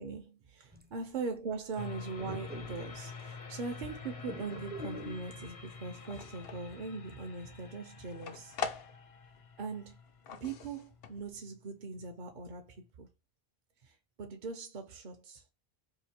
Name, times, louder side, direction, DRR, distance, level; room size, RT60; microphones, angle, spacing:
voice 1, 0.0-8.6 9.6-10.0 10.3-13.1 13.8-15.4, right 4 dB, 55° right, 0.7 m, -41 dB
sound 1, 0.7-1.0 2.2-3.0 4.3-5.3, left 1 dB, 15° right, 0.4 m, -45 dB
sound 2, 1.8-12.9, left 5 dB, 45° left, 0.5 m, -48 dB
sound 3, 5.8-6.8 7.2-9.4 9.6-11.4, left 6 dB, 70° left, 0.7 m, -42 dB
2.9 x 2.6 x 4.2 m
omnidirectional pair, 1.0 m